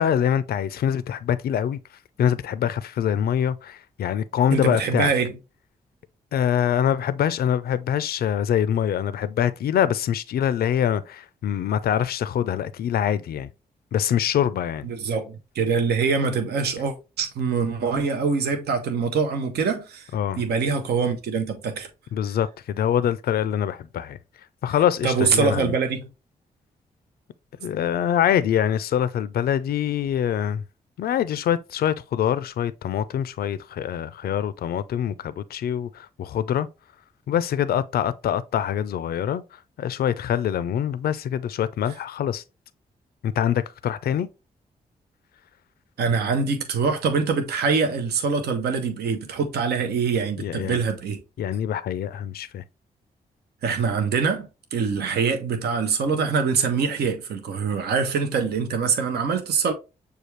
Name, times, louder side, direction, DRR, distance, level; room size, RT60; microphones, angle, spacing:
voice 1, 0.0-1.8 2.2-5.1 6.3-13.5 13.9-14.9 20.1-20.4 22.1-24.2 24.6-25.7 27.6-30.6 31.0-36.7 37.3-39.4 39.8-42.4 43.2-44.3 50.4-50.8 51.4-52.6, left 9 dB, 65° left, 0.4 m, -24 dB
voice 2, 4.5-5.3 14.8-20.1 20.4-21.9 25.0-26.0 46.0-51.2 53.6-59.7, right 5 dB, 75° right, 0.7 m, -24 dB
6.6 x 2.4 x 3.1 m
supercardioid pair, 50°, 17 cm